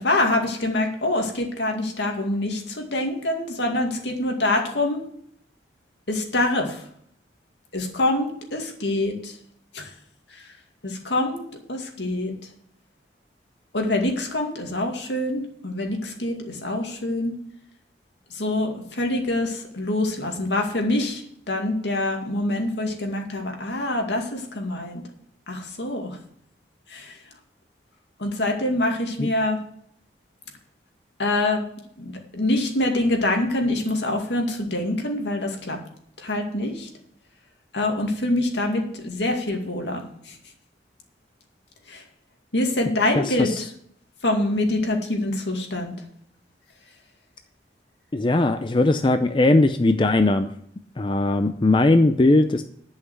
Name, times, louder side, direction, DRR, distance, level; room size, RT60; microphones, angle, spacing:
voice 1, 0.0-5.0 6.1-6.8 7.7-9.4 9.7-9.9 10.3-10.4 10.8-12.3 13.7-17.3 18.3-25.0 25.5-26.2 26.9-27.2 28.2-29.6 31.2-31.6 32.0-35.8 36.2-36.9 37.7-40.0 40.3-40.4 41.9-42.0 42.5-43.6 44.2-45.9, left 1 dB, 80° left, 2 dB, 2.3 m, -25 dB
voice 2, 43.2-43.6 48.1-50.5 51.0-52.6, left 2 dB, 25° left, 8 dB, 0.5 m, -19 dB
11.0 x 5.7 x 8.0 m, 0.66 s
head